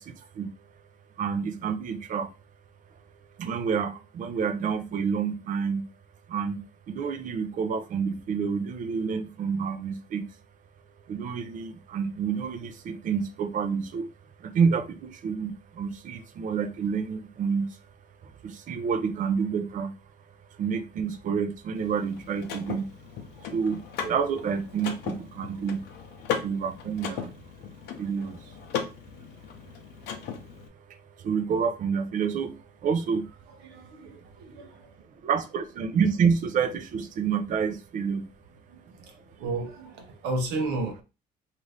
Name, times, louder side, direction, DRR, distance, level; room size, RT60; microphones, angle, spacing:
voice 1, 1.2-2.3 3.4-5.9 6.3-6.6 6.9-10.2 11.1-14.1 14.4-17.7 18.4-19.9 20.6-22.9 23.5-25.8 26.4-27.3 28.0-28.4 31.2-32.5 32.8-33.2 35.2-38.3, right 6 dB, 50° right, 0.5 m, -28 dB
Car / Mechanisms, 21.7-30.7, left 7 dB, 80° left, 0.7 m, -37 dB
voice 2, 33.6-34.9 38.7-41.0, right 2 dB, 90° right, 0.8 m, -33 dB
2.6 x 2.6 x 3.2 m
cardioid pair, 110°, 17 cm